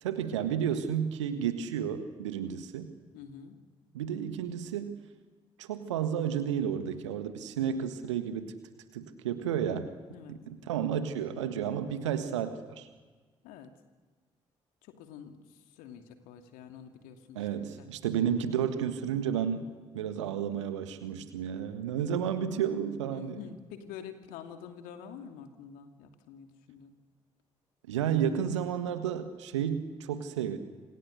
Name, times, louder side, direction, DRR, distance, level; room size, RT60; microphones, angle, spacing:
voice 1, 0.0-2.9 3.9-5.0 5.6-8.5 8.9-9.9 10.3-12.9 17.4-19.7 19.9-23.4 27.9-30.6, right 8 dB, 75° right, 10 dB, 1.7 m, -32 dB
voice 2, 3.1-3.6 10.1-10.3 11.7-11.8 13.4-13.7 15.0-15.4 15.8-17.9 20.2-20.3 23.1-26.9, left 8 dB, 65° left, 6 dB, 2.6 m, -47 dB
27.5 x 27.0 x 6.6 m, 1.4 s
figure-of-eight pair, 40°, 15 cm